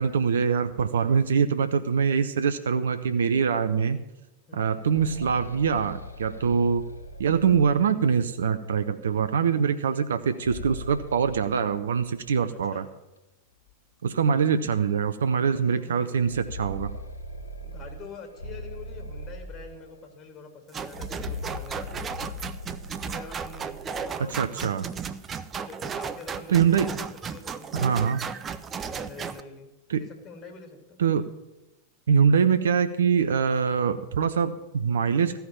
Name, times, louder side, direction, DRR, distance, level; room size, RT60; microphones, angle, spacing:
voice 1, 0.0-4.0 4.5-6.8 7.2-12.9 14.0-16.9 24.4-24.9 26.5-26.9 27.7-28.2 29.9-30.0 31.0-31.3 32.1-35.4, right 6 dB, 65° right, 11 dB, 0.5 m, -24 dB
voice 2, 4.5-4.8 12.5-12.9 15.5-16.2 17.6-22.6 23.1-24.7 25.6-28.2 28.8-31.0, left 4 dB, 30° left, 4 dB, 2.4 m, -45 dB
sound 1, 4.8-8.4 10.2-12.4 12.7-12.8 13.7-13.8 14.3-14.4 16.0-20.2 20.8-24.2, left 1 dB, 80° left, 0.8 m, -41 dB
sound 2, 20.7-29.4, right 6 dB, 25° right, 0.6 m, -35 dB
14.0 x 5.7 x 8.8 m, 1.0 s
figure-of-eight pair, 90°, 0 cm